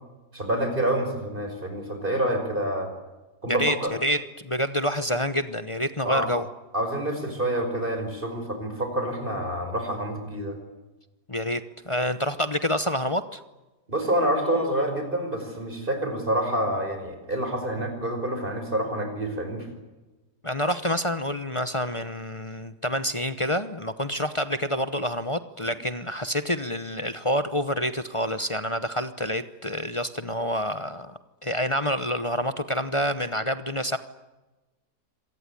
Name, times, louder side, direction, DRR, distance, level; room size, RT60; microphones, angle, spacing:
voice 1, 0.3-2.9 3.4-3.9 6.0-6.3 6.7-10.6 13.9-19.7, right 1 dB, 30° right, 6 dB, 5.5 m, -27 dB
voice 2, 3.5-6.5 11.3-13.4 20.4-34.0, equal, 25° left, 11 dB, 0.8 m, -28 dB
26.0 x 19.0 x 9.9 m, 1.1 s
omnidirectional pair, 1.7 m